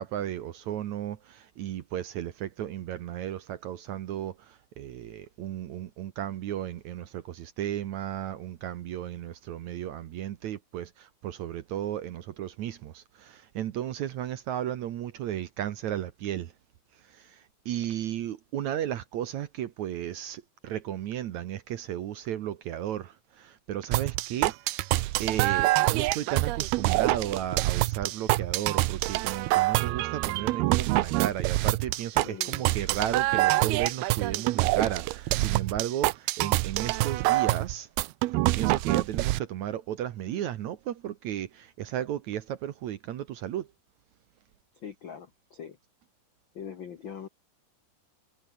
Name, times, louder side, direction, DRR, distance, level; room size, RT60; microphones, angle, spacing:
voice 1, 0.0-16.5 17.1-24.5 25.2-37.9 38.6-43.7, right 11 dB, 65° right, 2.0 m, -34 dB
sound 1, 23.9-39.4, right 19 dB, 90° right, 2.7 m, -26 dB
voice 2, 32.2-32.7 44.8-45.8 46.5-47.3, left 7 dB, 80° left, 1.0 m, -42 dB
omnidirectional pair, 4.3 m